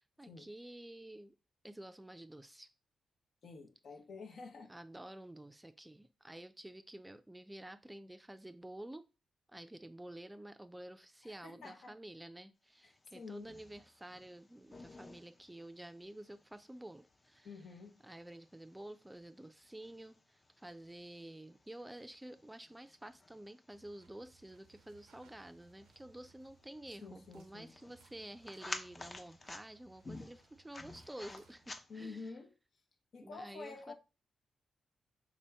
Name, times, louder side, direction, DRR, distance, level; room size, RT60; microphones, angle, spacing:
voice 1, 0.0-1.3 1.6-2.7 4.7-9.1 9.5-17.5 18.0-32.2 33.2-33.9, right 1 dB, 15° right, 0.4 m, -50 dB
voice 2, 3.4-4.7 11.2-11.9 12.8-13.5 17.4-18.0 27.0-27.7 31.9-32.5 33.1-33.9, left 4 dB, 70° left, 0.8 m, -49 dB
sound 1, 12.9-32.3, left 2 dB, 35° left, 0.6 m, -53 dB
sound 2, 23.7-31.7, right 5 dB, 90° right, 0.5 m, -67 dB
3.5 x 2.6 x 3.4 m
supercardioid pair, 40°, 0 cm